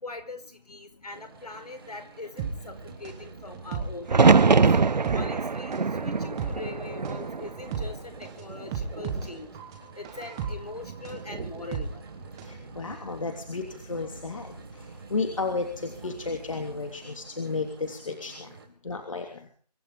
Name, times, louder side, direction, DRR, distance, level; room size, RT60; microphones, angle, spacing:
voice 1, 0.0-4.4 5.1-9.5 9.9-12.0, left 3 dB, 65° left, 7 dB, 4.7 m, -42 dB
sound 1, 1.1-18.7, right 3 dB, 35° right, 3.3 m, -47 dB
sound 2, 2.4-12.6 12.9-13.0, right 6 dB, 5° right, 1.2 m, -36 dB
sound 3, 4.1-8.1 8.5-9.3 11.1-11.6, right 4 dB, 90° right, 0.8 m, -23 dB
voice 2, 12.5-14.8 15.1-18.5 18.8-19.5, left 4 dB, 50° left, 4 dB, 3.2 m, -33 dB
25.0 x 13.0 x 3.8 m, 0.44 s
figure-of-eight pair, 170°, 21 cm